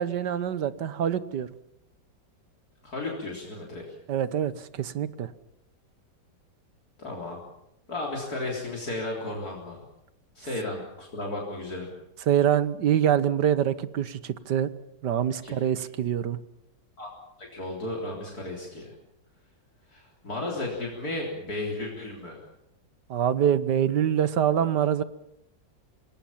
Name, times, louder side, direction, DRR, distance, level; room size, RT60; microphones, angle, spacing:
voice 1, 0.0-1.5 4.1-5.3 12.3-14.7 15.0-16.4 23.1-25.0, right 9 dB, 70° right, 15 dB, 1.6 m, -25 dB
voice 2, 2.8-3.9 7.0-7.4 7.9-9.8 10.4-11.9 15.4-15.6 17.0-17.1 17.4-18.9 19.9-22.4, left 2 dB, 55° left, -2 dB, 4.2 m, -34 dB
26.5 x 19.5 x 7.3 m, 0.84 s
omnidirectional pair, 1.9 m